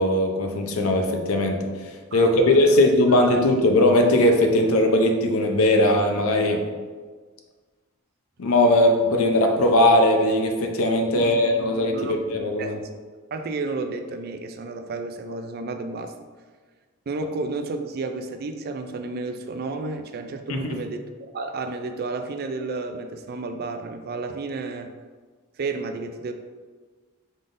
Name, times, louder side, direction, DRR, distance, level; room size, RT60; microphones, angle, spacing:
voice 1, 0.0-1.6 2.1-6.6 8.4-12.8 20.5-20.8, left 1 dB, 75° left, 4 dB, 0.6 m, -19 dB
voice 2, 2.1-2.7 3.3-3.4 11.1-12.2 12.6-12.9 13.3-16.1 17.1-21.0 21.3-24.9 25.6-26.3, right 3 dB, 45° right, 7 dB, 0.3 m, -32 dB
5.2 x 3.8 x 2.5 m, 1.5 s
head